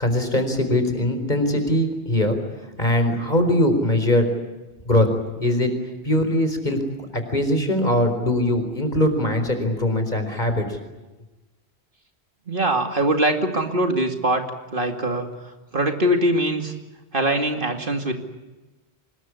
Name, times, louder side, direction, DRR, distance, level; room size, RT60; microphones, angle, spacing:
voice 1, 0.0-2.4 2.8-4.3 4.9-5.1 5.4-5.7 6.0-6.8 7.1-10.6, left 1 dB, 45° left, 7 dB, 4.6 m, -21 dB
voice 2, 12.5-14.4 14.7-15.3 15.7-16.7 17.1-18.1, right 1 dB, 55° right, 5 dB, 2.7 m, -22 dB
25.0 x 21.0 x 9.9 m, 1.1 s
omnidirectional pair, 1.1 m